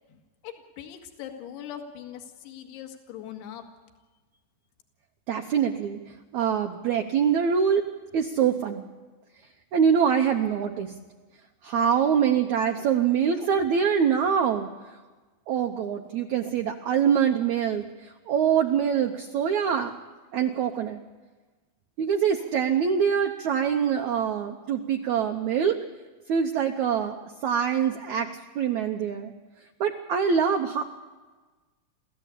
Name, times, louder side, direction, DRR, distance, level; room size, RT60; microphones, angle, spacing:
voice 1, 0.4-3.6, left 9 dB, 75° left, 4 dB, 3.8 m, -41 dB
voice 2, 5.3-6.0 6.3-7.8 8.1-8.8 9.7-10.9 11.6-14.7 15.5-20.0 20.3-21.0 22.0-25.8 26.3-29.3 29.8-30.8, right 7 dB, 85° right, 4 dB, 1.6 m, -24 dB
28.5 x 14.5 x 8.4 m, 1.3 s
omnidirectional pair, 4.8 m